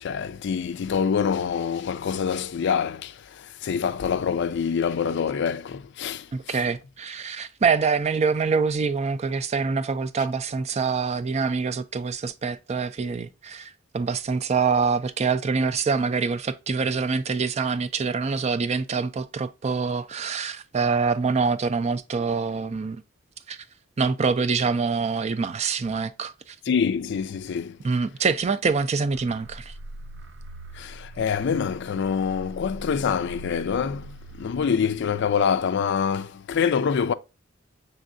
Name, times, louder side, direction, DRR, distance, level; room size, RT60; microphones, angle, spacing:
voice 1, 0.0-3.1 3.6-6.2 26.7-27.7 30.8-34.1 34.4-37.1, left 6 dB, 60° left, 0.4 m, -25 dB
voice 2, 6.3-23.0 23.5-23.6 24.0-26.6 27.8-29.7, right 5 dB, 35° right, 0.4 m, -25 dB
sound 1, 29.0-35.6, right 1 dB, 65° right, 0.7 m, -43 dB
6.3 x 3.4 x 2.5 m
head